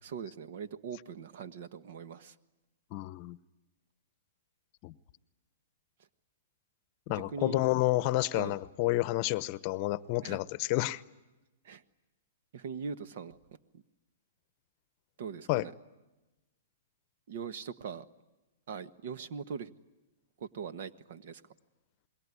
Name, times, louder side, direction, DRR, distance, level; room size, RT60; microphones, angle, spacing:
voice 1, 0.0-2.3 7.1-7.7 8.3-8.6 10.2-10.4 11.6-11.8 12.5-13.4 13.7-13.8 15.2-15.7 17.3-18.1 18.7-19.7 20.4-21.4, right 6 dB, 60° right, 12 dB, 1.4 m, -41 dB
voice 2, 2.9-3.4 4.8-4.9 7.1-11.0 15.5-15.7, left 18 dB, 40° left, 17 dB, 0.8 m, -30 dB
27.0 x 21.5 x 9.7 m, 1.1 s
hypercardioid pair, 130°, 0 cm